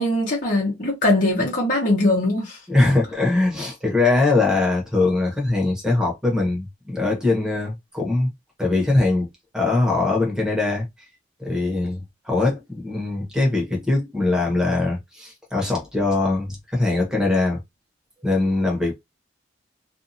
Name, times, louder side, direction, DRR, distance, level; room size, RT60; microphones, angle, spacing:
voice 1, 0.0-2.6, left 1 dB, 45° left, 1.1 m, -21 dB
voice 2, 2.7-8.3 8.6-9.3 9.5-10.9 11.4-17.6 18.2-18.9, left 2 dB, 5° right, 1.0 m, -21 dB
2.7 x 2.5 x 2.7 m
head